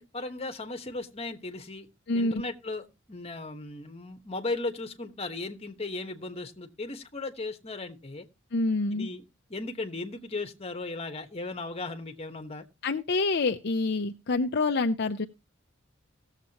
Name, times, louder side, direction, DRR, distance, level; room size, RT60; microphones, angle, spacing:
voice 1, 0.0-1.9 2.1-8.3 8.9-9.2 9.5-12.6, left 2 dB, 30° left, 1.2 m, -36 dB
voice 2, 2.1-2.4 8.5-9.1 12.8-15.3, left 3 dB, 55° left, 0.6 m, -27 dB
18.0 x 7.4 x 2.9 m
head